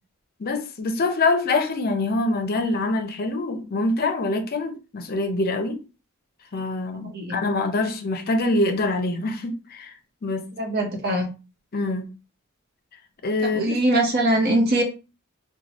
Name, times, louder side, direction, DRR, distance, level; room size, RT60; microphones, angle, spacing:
voice 1, 0.4-5.8 6.5-9.9 10.2-10.5 11.7-12.1 13.2-13.8, left 2 dB, 45° left, 0.6 m, -25 dB
voice 2, 7.1-7.4 10.6-11.3 13.4-14.8, right 1 dB, 50° right, 0.9 m, -22 dB
3.1 x 2.2 x 4.0 m
head